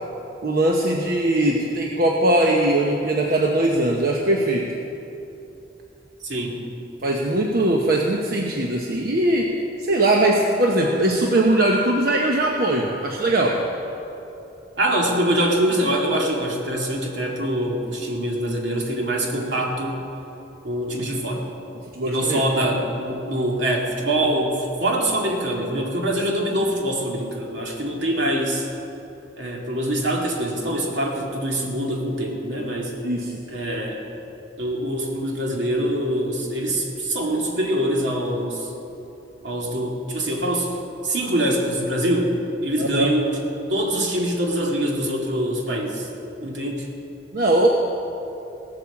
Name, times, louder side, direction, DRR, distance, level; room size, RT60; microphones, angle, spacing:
voice 1, 0.4-4.7 7.0-13.6 21.9-22.4 33.0-33.3 42.8-43.1 47.3-47.7, right 1 dB, 55° right, 0 dB, 1.0 m, -20 dB
voice 2, 6.2-6.6 14.8-20.1 20.6-21.5 22.0-28.7 29.4-33.0 33.5-34.0 34.6-38.7 39.4-40.8 41.0-43.4 43.7-46.1 46.4-46.9, right 1 dB, 75° right, -1 dB, 2.3 m, -24 dB
17.0 x 8.7 x 7.1 m, 2.9 s
head